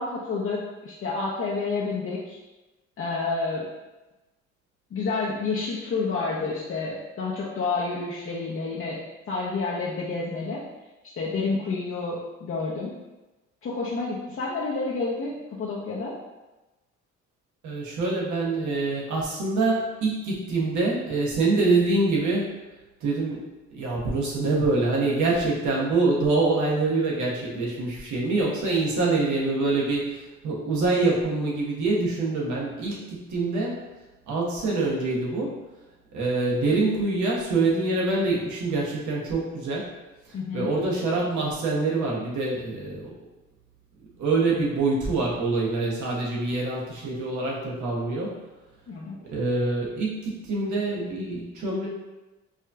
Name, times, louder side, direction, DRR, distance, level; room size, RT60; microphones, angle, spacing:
voice 1, 0.0-2.4 3.0-3.7 4.9-9.0 9.3-10.6 11.2-12.9 13.6-16.2 40.3-40.7 48.9-49.2, left 3 dB, 45° left, -5 dB, 0.6 m, -29 dB
voice 2, 17.6-22.5 23.0-23.4 23.7-33.8 34.3-35.6 36.1-39.9 40.2-43.1 44.2-48.4 49.3-51.9, right 3 dB, 75° right, -4 dB, 1.1 m, -25 dB
4.8 x 2.7 x 2.3 m, 1.1 s
cardioid pair, 90°, 30 cm